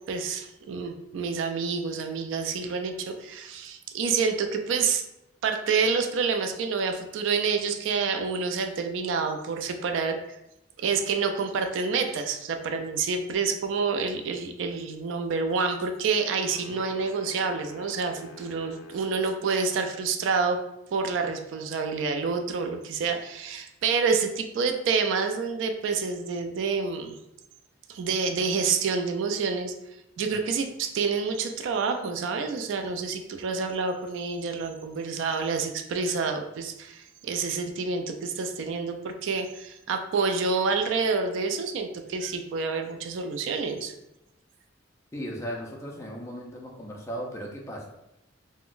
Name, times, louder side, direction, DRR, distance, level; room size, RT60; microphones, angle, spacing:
voice 1, 0.1-5.0 5.4-10.4 10.8-20.6 20.9-27.2 27.9-29.7 30.2-43.9, right 5 dB, 70° right, 5 dB, 0.3 m, -28 dB
sound 1, 16.2-19.5, left 1 dB, 75° left, 0.4 m, -47 dB
voice 2, 45.1-47.9, equal, 15° left, -1 dB, 0.4 m, -36 dB
3.7 x 2.1 x 2.4 m, 0.87 s
head